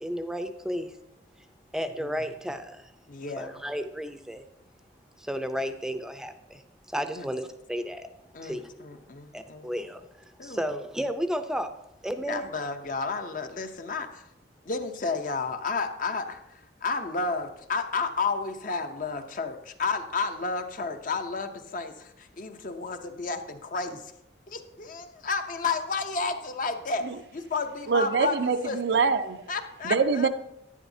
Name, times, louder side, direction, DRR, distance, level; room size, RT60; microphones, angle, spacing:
voice 1, 0.0-0.9 1.7-2.9 3.4-4.4 5.2-6.6 6.9-8.1 8.4-8.9 9.3-11.7 12.0-12.5, equal, 5° right, 0.5 m, -33 dB
voice 2, 3.1-3.6 7.1-7.3 8.3-9.7 10.4-10.7 12.3-14.2 14.6-24.1 24.5-27.0 27.3-29.0 29.5-30.3, left 4 dB, 45° left, 0.7 m, -32 dB
voice 3, 27.9-29.4 29.8-30.3, right 5 dB, 65° right, 0.5 m, -24 dB
11.0 x 9.7 x 2.7 m
head